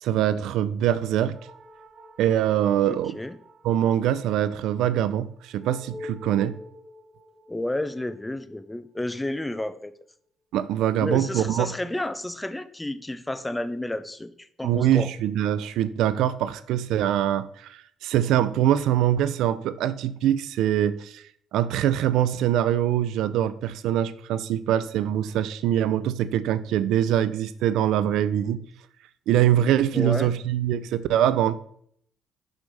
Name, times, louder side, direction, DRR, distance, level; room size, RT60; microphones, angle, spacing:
voice 1, 0.0-1.4 2.2-3.2 3.6-6.6 10.5-11.7 14.6-21.2 21.5-28.6 29.3-31.6, right 11 dB, 80° right, 0.4 m, -23 dB
sound 1, 1.3-10.2, left 1 dB, 30° right, 1.9 m, -48 dB
voice 2, 2.9-3.4 7.5-9.9 11.0-15.1 29.9-30.3, left 1 dB, 10° left, 0.4 m, -31 dB
6.1 x 5.4 x 3.4 m
cardioid pair, 105°, 0 cm